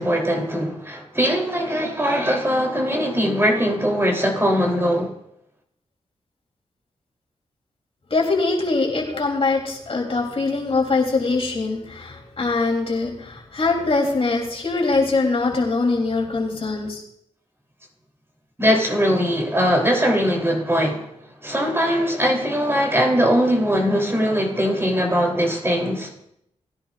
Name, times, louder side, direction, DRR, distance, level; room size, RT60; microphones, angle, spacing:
voice 1, 0.0-5.1 18.6-21.1 21.4-26.1, equal, 20° right, 3.4 m, -21 dB
voice 2, 8.1-17.0, left 3 dB, 50° left, 3.3 m, -22 dB
19.5 x 10.5 x 2.5 m
cardioid pair, 50°, 13 cm